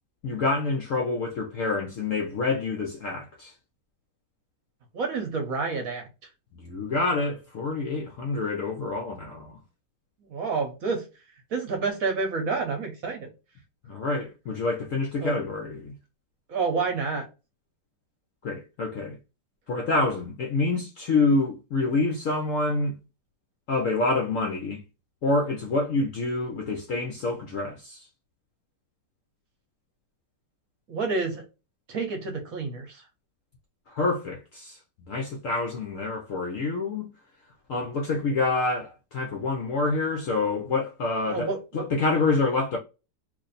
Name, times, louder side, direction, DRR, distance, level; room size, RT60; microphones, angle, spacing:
voice 1, 0.2-3.5 6.5-9.5 13.9-15.9 18.4-19.2 19.7-23.0 23.7-24.8 25.2-28.1 33.9-37.1 37.7-42.8, left 3 dB, 70° left, 0.8 m, -27 dB
voice 2, 4.9-6.1 10.3-11.0 11.5-13.3 15.2-15.3 16.5-17.3 30.9-31.4 31.9-33.0 41.3-41.9, right 4 dB, 60° right, 1.0 m, -29 dB
3.0 x 2.5 x 4.0 m
omnidirectional pair, 2.0 m